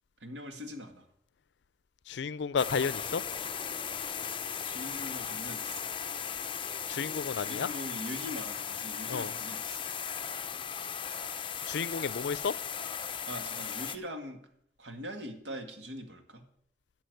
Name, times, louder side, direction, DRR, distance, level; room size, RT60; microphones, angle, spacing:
voice 1, 0.2-1.1 4.6-5.8 7.4-9.8 13.3-14.4 14.8-16.4, equal, 85° right, 1.9 m, -42 dB
voice 2, 2.1-3.2 6.9-7.7 9.1-9.3 11.7-12.5, left 6 dB, 75° left, 0.5 m, -32 dB
sound 1, 2.6-14.0, left 7 dB, 30° left, 0.6 m, -37 dB
11.5 x 7.2 x 7.8 m
head